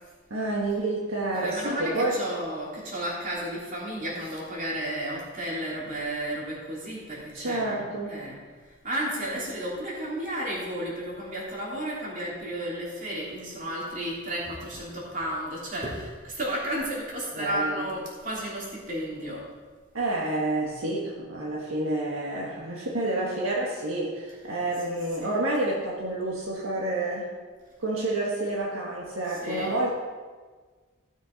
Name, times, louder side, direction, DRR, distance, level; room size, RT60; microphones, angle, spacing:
voice 1, 0.3-2.2 7.3-8.2 17.3-17.9 19.9-27.3 27.8-29.9, right 2 dB, 75° right, -3 dB, 1.6 m, -29 dB
voice 2, 1.3-8.4 8.8-19.4 25.2-25.4 29.3-29.7, right 1 dB, 40° right, -5 dB, 3.2 m, -33 dB
15.5 x 6.3 x 5.3 m, 1.4 s
head